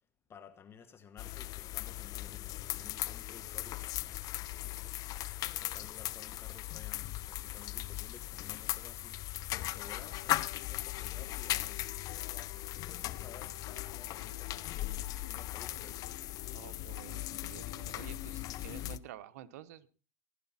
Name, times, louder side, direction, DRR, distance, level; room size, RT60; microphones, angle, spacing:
voice 1, 0.3-4.0 4.6-5.1 5.4-9.2 9.7-16.1, left 7 dB, 30° left, 1.3 m, -55 dB
sound 1, 1.2-19.0, left 16 dB, 45° left, 0.6 m, -38 dB
sound 2, 9.8-18.7, left 12 dB, 80° left, 1.1 m, -54 dB
voice 2, 16.5-19.9, right 11 dB, 80° right, 0.9 m, -50 dB
16.0 x 11.5 x 4.2 m
supercardioid pair, 115°, 9 cm